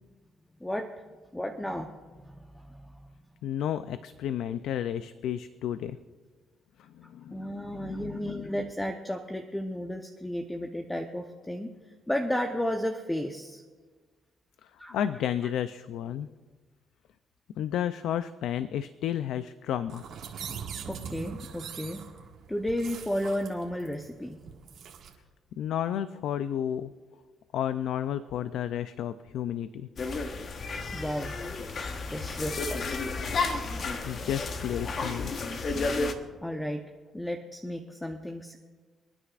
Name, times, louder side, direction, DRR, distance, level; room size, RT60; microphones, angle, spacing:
voice 1, 1.3-2.9 7.3-11.7 12.1-13.6 14.8-14.9 20.9-22.0 22.5-24.4 30.9-31.3 32.1-33.1 36.4-36.8 37.1-38.6, equal, 10° left, 4 dB, 0.8 m, -33 dB
voice 2, 3.4-6.0 6.8-8.5 14.6-16.3 17.6-20.0 25.6-26.9 27.5-29.9 34.1-35.3, left 10 dB, 80° left, 12 dB, 0.4 m, -32 dB
sound 1, 19.9-25.1, right 7 dB, 75° right, 1.8 m, -42 dB
sound 2, 30.0-36.1, left 3 dB, 50° left, 1.1 m, -32 dB
29.0 x 9.8 x 2.5 m, 1.4 s
cardioid pair, 90°, 0 cm